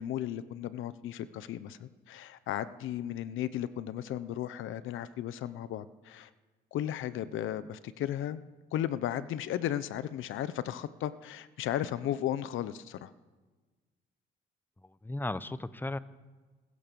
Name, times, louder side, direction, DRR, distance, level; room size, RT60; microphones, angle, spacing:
voice 1, 0.0-6.3 6.7-8.4 8.7-13.1, left 11 dB, 85° left, 14 dB, 1.0 m, -35 dB
voice 2, 14.8-16.0, left 2 dB, 10° left, 14 dB, 1.0 m, -36 dB
27.5 x 15.0 x 7.1 m, 1.3 s
cardioid pair, 90°, 20 cm